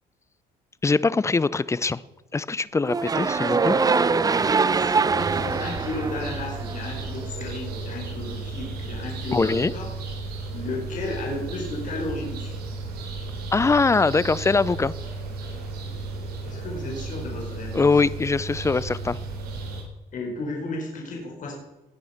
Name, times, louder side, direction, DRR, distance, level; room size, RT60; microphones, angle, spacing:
voice 1, 0.8-2.0 2.3-3.8 9.3-9.7 13.5-14.9 17.7-19.2, left 4 dB, 15° left, 19 dB, 0.6 m, -22 dB
sound 1, 2.8-7.0, right 4 dB, 20° right, 0.7 m, -23 dB
voice 2, 4.8-9.9 10.5-12.5 16.4-18.0 20.1-21.5, left 2 dB, 50° left, -2 dB, 5.0 m, -34 dB
sound 2, 5.2-19.8, right 3 dB, 70° right, 4.1 m, -34 dB
19.5 x 9.1 x 5.9 m, 1.1 s
cardioid pair, 110°, 17 cm